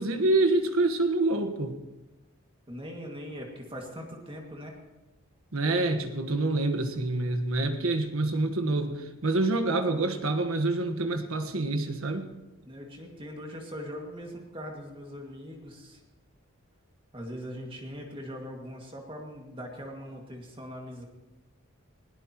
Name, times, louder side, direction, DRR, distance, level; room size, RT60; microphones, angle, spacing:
voice 1, 0.0-1.8 5.5-12.3, right 2 dB, 75° right, 7 dB, 1.4 m, -27 dB
voice 2, 2.7-4.8 12.7-16.0 17.1-21.0, equal, 25° right, 1 dB, 2.1 m, -41 dB
20.0 x 17.5 x 3.0 m, 1.1 s
head